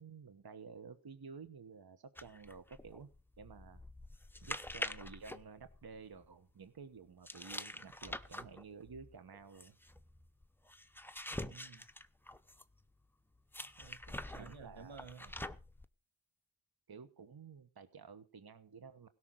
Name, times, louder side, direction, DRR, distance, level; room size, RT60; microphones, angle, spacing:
voice 1, 0.0-3.1 3.4-3.8 4.4-9.8 14.3-15.0 16.9-19.1, right 5 dB, 50° right, 1.2 m, -52 dB
sound 1, 2.2-6.3 7.3-12.8 13.5-15.9, left 1 dB, 5° left, 0.8 m, -46 dB
voice 2, 11.3-11.8 13.6-15.3, right 5 dB, 70° right, 1.6 m, -54 dB
17.0 x 6.1 x 7.6 m
wide cardioid pair, 60°, 49 cm